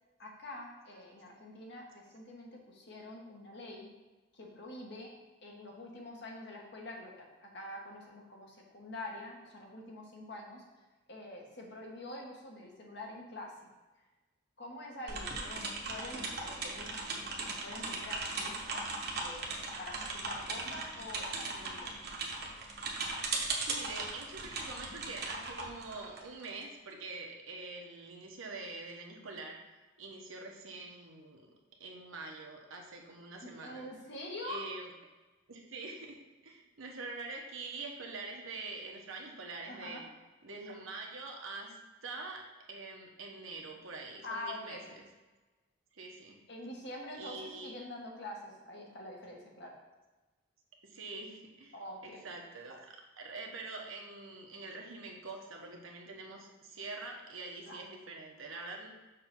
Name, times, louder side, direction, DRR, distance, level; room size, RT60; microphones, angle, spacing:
voice 1, 0.2-3.9 4.3-5.1 5.4-10.6 11.1-13.5 14.6-18.9 19.2-21.9 33.4-34.6 39.7-40.0 44.2-44.8 46.5-49.7 51.7-52.2 57.6-57.8, left 1 dB, 55° left, -1 dB, 1.3 m, -46 dB
sound 1, 15.1-26.6, right 3 dB, 50° right, 1.0 m, -38 dB
voice 2, 23.6-29.6 30.0-31.5 31.8-33.8 34.4-34.9 35.5-40.0 40.4-41.8 42.0-45.1 45.9-46.4 47.2-47.8 50.8-58.9, right 3 dB, 75° right, 1 dB, 1.1 m, -45 dB
6.5 x 3.3 x 6.0 m, 1.2 s
head